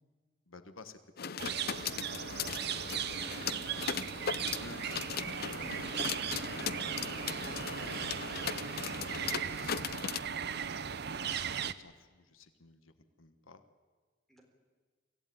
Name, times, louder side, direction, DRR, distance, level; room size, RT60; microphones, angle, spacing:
voice 1, 0.5-1.9 4.4-4.8 5.4-10.1 11.1-13.6, left 3 dB, 90° left, 10 dB, 1.4 m, -55 dB
sound 1, 1.2-10.2, left 7 dB, 50° left, 0.6 m, -38 dB
sound 2, 1.4-11.7, right 7 dB, 55° right, 0.7 m, -37 dB
voice 2, 3.2-4.0 14.3-14.4, right 1 dB, ahead, 1 dB, 3.9 m, -60 dB
sound 3, 3.7-11.4, right 1 dB, 20° right, 1.8 m, -57 dB
24.5 x 15.0 x 9.3 m, 1.4 s
head